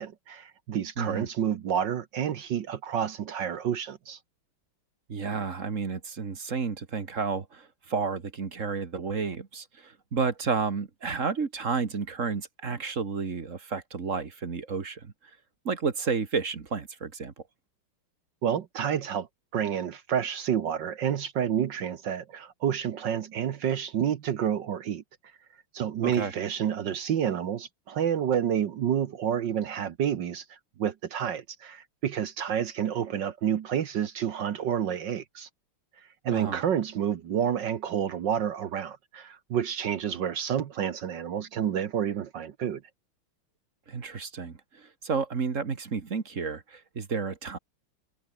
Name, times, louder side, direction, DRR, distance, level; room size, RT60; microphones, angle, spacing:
voice 1, 0.0-4.2 18.4-19.3 19.5-25.0 25.7-35.5 36.2-42.8, right 9 dB, 60° right, 1.6 m, -29 dB
voice 2, 1.0-1.3 5.1-15.1 15.7-17.3 26.0-26.3 36.3-36.6 43.9-47.6, right 5 dB, 40° right, 1.8 m, -31 dB
omnidirectional pair, 2.4 m